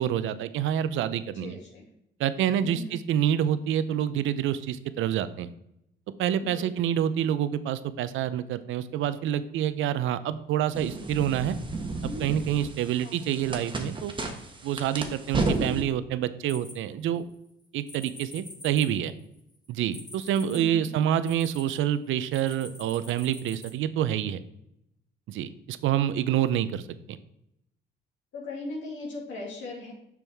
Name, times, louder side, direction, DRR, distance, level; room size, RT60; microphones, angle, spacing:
voice 1, 0.0-1.6 2.2-5.5 6.2-11.6 12.0-14.1 14.6-17.2 17.7-19.1 19.7-24.4 25.3-26.8 27.1-27.2, right 10 dB, 85° right, 14 dB, 0.6 m, -27 dB
voice 2, 1.3-1.9 2.6-3.0 6.4-6.7 13.0-13.2 13.4-13.6 20.5-20.9 28.3-29.9, left 2 dB, 70° left, -3 dB, 2.3 m, -39 dB
sound 1, 10.7-15.8, right 2 dB, 25° right, 1.2 m, -32 dB
sound 2, 16.5-17.3 17.9-21.8 22.3-23.7, left 2 dB, 20° left, 1.8 m, -46 dB
7.0 x 6.1 x 3.5 m, 0.79 s
cardioid pair, 90°, 20 cm